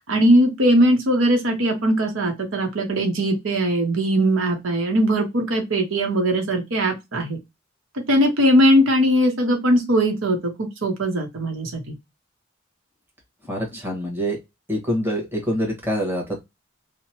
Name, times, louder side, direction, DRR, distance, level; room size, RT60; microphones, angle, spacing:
voice 1, 0.0-7.4 7.9-11.9, equal, 80° right, 0.8 m, -20 dB
voice 2, 13.5-14.4 14.7-16.4, equal, 10° right, 1.2 m, -25 dB
2.9 x 2.1 x 2.8 m
head